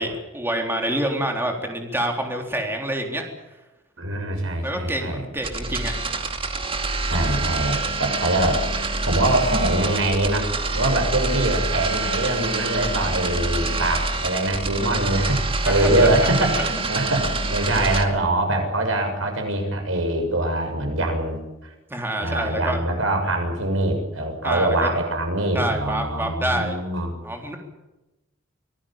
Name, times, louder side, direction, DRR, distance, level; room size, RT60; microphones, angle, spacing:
voice 1, 0.0-3.2 4.6-5.9 15.6-16.1 21.9-22.8 24.4-24.9 25.5-26.8 27.2-27.6, right 1 dB, 10° right, 2 dB, 3.8 m, -27 dB
voice 2, 4.0-5.2 7.1-8.6 9.0-10.5 10.7-21.7 22.2-27.1, right 1 dB, 85° right, 4 dB, 6.9 m, -23 dB
sound 1, 5.4-18.0, right 3 dB, 30° right, 2.5 m, -26 dB
25.5 x 18.5 x 8.9 m, 1.0 s
head